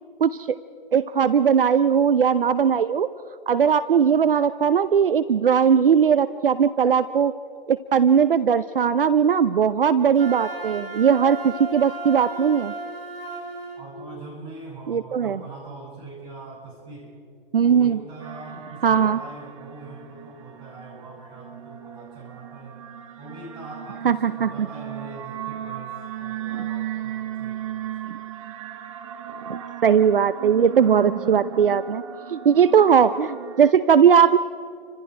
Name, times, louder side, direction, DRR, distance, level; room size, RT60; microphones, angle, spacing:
voice 1, 0.2-0.6 0.9-3.1 3.5-7.3 7.7-12.7 14.9-15.4 17.5-18.0 18.8-19.2 24.0-24.7 28.1-28.2 29.8-32.0 32.3-34.4, right 7 dB, 70° right, 14 dB, 0.8 m, -19 dB
Wind instrument woodwind instrument, 10.1-13.9, right 3 dB, 90° right, 5.4 m, -35 dB
voice 2, 13.8-17.1 17.6-22.8 23.2-28.0, right 3 dB, 15° right, -3 dB, 6.7 m, -42 dB
sound 1, 18.2-33.7, right 11 dB, 35° right, 1.6 m, -36 dB
29.5 x 25.5 x 4.6 m, 2.5 s
hypercardioid pair, 145°, 29 cm